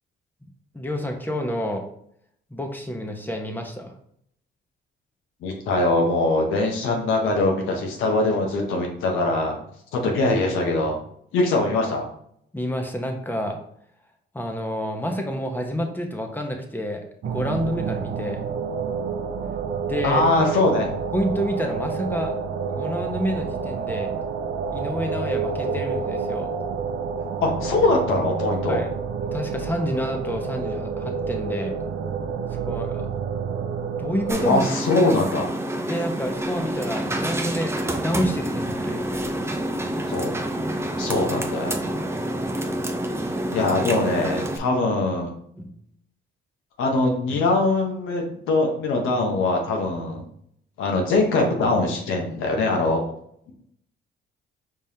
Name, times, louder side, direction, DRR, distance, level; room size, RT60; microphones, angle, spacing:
voice 1, 0.7-1.8 2.5-3.9 12.5-13.6 14.3-18.5 19.8-20.2 21.1-22.3 22.7-24.1 24.7-26.5 28.7-28.9 29.3-31.8 32.7-33.1 34.0-34.8 35.8-39.0 41.0-41.3 45.5-45.7, equal, 10° left, 3 dB, 0.9 m, -28 dB
voice 2, 5.4-9.6 9.9-11.0 11.3-12.1 20.0-20.9 27.4-28.8 34.4-35.5 40.1-40.3 41.0-41.9 43.5-45.3 46.8-50.3 50.8-53.0 53.5-53.6, left 2 dB, 90° left, 1 dB, 1.1 m, -22 dB
sound 1, 17.2-34.5, right 5 dB, 65° right, 0.6 m, -29 dB
sound 2, 34.3-44.6, right 1 dB, 15° right, 0.6 m, -28 dB
5.0 x 3.5 x 2.8 m, 0.69 s
cardioid pair, 90°, 20 cm